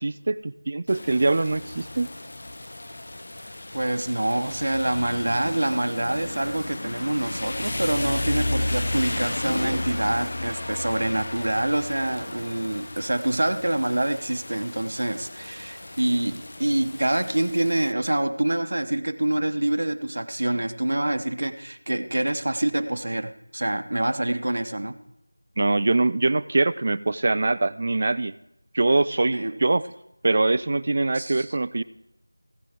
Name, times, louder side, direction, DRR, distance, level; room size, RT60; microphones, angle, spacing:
voice 1, 0.0-2.1 25.6-28.3 28.7-29.8 30.2-31.8, right 2 dB, 30° right, 18 dB, 0.3 m, -23 dB
Rain, 0.9-17.9, left 1 dB, 50° left, 0.5 m, -33 dB
voice 2, 3.7-25.0 29.3-29.6 31.1-31.5, right 1 dB, 60° right, 8 dB, 0.9 m, -26 dB
16.0 x 10.0 x 3.7 m, 0.87 s
figure-of-eight pair, 175°, 0 cm